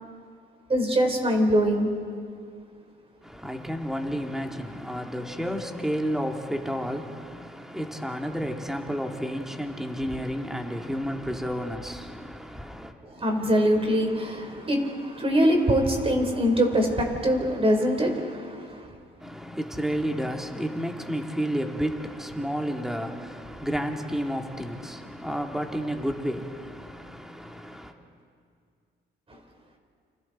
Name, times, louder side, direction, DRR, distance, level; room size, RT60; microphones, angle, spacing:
voice 1, 0.7-1.9 13.1-18.9, equal, 30° right, 4.5 m, -23 dB
voice 2, 3.2-12.9 19.2-27.9, equal, ahead, 2.3 m, -31 dB
29.5 x 27.0 x 4.4 m
cardioid pair, 90°, 20 cm